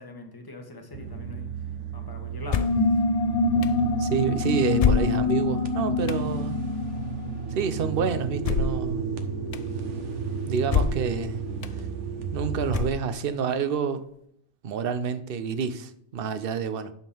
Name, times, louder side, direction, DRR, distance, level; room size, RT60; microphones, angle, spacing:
voice 1, 0.0-1.5 1.9-2.6, left 1 dB, 20° left, 1.3 m, -41 dB
sound 1, 0.9-12.9, right 3 dB, 80° right, 1.3 m, -31 dB
sound 2, 2.5-2.9 3.6-3.7 4.8-5.5 6.1-6.2 8.4-8.9 9.5-9.6 10.7-11.1 11.6-11.7 12.7-13.3, left 7 dB, 75° left, 0.3 m, -25 dB
sound 3, 2.5-7.8, left 3 dB, 55° left, 0.8 m, -26 dB
voice 2, 4.0-6.6 7.5-9.1 10.4-11.4 11.7-11.8 12.3-14.0 14.6-16.9, right 6 dB, 55° right, 0.8 m, -28 dB
10.5 x 3.7 x 6.9 m
omnidirectional pair, 1.2 m